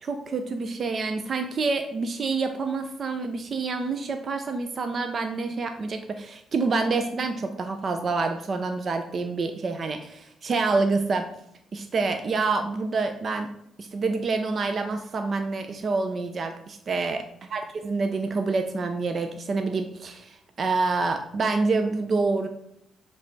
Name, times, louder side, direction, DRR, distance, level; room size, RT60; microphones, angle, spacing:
voice 1, 0.0-11.3 11.7-13.5 13.8-17.2 17.5-22.5, right 3 dB, 45° right, 6 dB, 0.5 m, -27 dB
7.1 x 3.3 x 4.0 m, 0.74 s
cardioid pair, 90°, 0 cm